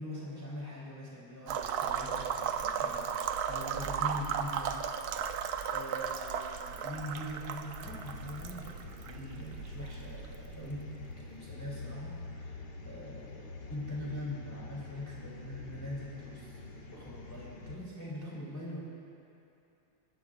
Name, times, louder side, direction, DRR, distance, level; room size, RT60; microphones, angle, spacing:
voice 1, 0.0-4.7 5.7-10.8 11.2-12.6 12.8-18.8, left 1 dB, 10° left, -6 dB, 2.8 m, -43 dB
sound 1, 1.5-11.2, right 7 dB, 65° right, 1.0 m, -36 dB
sound 2, 7.8-17.8, left 3 dB, 65° left, 1.8 m, -46 dB
27.5 x 14.5 x 2.5 m, 2.7 s
omnidirectional pair, 2.0 m